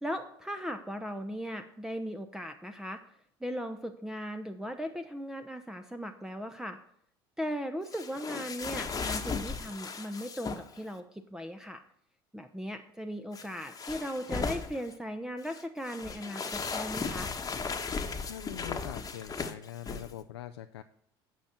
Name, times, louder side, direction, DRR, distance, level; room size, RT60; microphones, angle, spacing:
voice 1, 0.0-3.0 3.4-6.8 7.4-11.8 12.3-17.3, equal, 5° right, 7 dB, 0.9 m, -38 dB
sound 1, 7.9-10.8 13.3-14.9 15.4-20.1, left 5 dB, 25° left, 1.3 m, -36 dB
voice 2, 18.2-20.8, left 12 dB, 85° left, 8 dB, 0.4 m, -43 dB
9.1 x 5.7 x 7.5 m, 0.69 s
hypercardioid pair, 70°, 13 cm